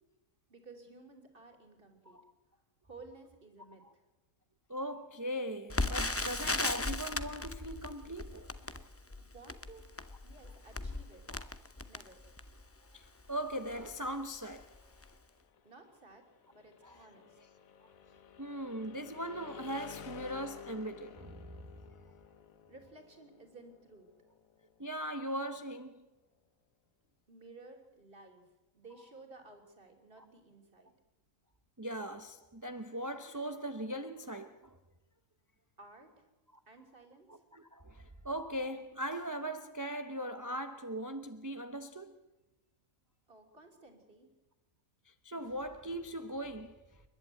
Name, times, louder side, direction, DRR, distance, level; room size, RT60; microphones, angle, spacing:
voice 1, 0.5-2.2 2.8-4.0 9.2-9.8 10.2-11.2 11.8-12.2 15.6-16.2 16.5-17.4 22.7-24.1 27.3-28.4 28.7-30.9 35.8-36.3 36.7-37.4 43.3-44.3, right 3 dB, 40° right, 3.4 m, -55 dB
voice 2, 4.7-8.8 11.3-11.5 12.9-14.7 16.8-17.0 18.4-21.7 24.8-26.1 31.8-34.8 37.3-42.2 45.0-47.0, right 1 dB, 15° right, 0.8 m, -40 dB
Crackle, 5.7-12.7 13.3-13.4 13.7-13.9 14.5-14.8 15.0-15.1, left 2 dB, 15° left, 0.5 m, -37 dB
sound 1, 9.8-25.6, left 8 dB, 85° left, 1.5 m, -55 dB
29.0 x 11.0 x 8.9 m
omnidirectional pair, 1.4 m